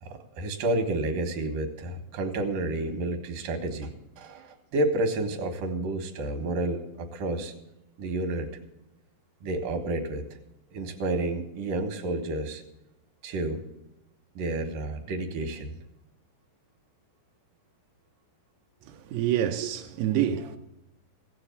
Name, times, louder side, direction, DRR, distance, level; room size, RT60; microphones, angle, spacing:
voice 1, 0.0-3.9 4.2-7.5 8.0-8.6 9.4-10.3 10.7-12.6 13.2-13.6 14.4-15.7, right 2 dB, 60° right, 2.8 m, -30 dB
voice 2, 18.9-20.6, right 10 dB, 80° right, 2.1 m, -27 dB
16.5 x 7.7 x 7.0 m
omnidirectional pair, 4.9 m